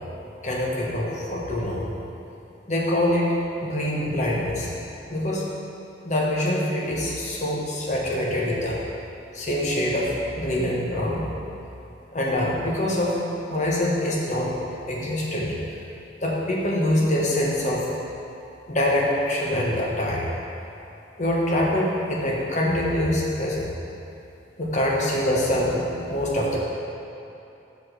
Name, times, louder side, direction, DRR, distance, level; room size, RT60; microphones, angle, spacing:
voice 1, 0.4-1.9 2.7-3.3 3.6-4.7 5.1-5.4 6.0-8.8 9.3-11.3 12.1-13.2 13.5-14.5 14.9-15.8 16.2-17.9 18.7-20.3 21.2-23.7 24.6-26.6, left 1 dB, 40° left, -4 dB, 1.2 m, -24 dB
5.9 x 5.1 x 6.1 m, 2.8 s
head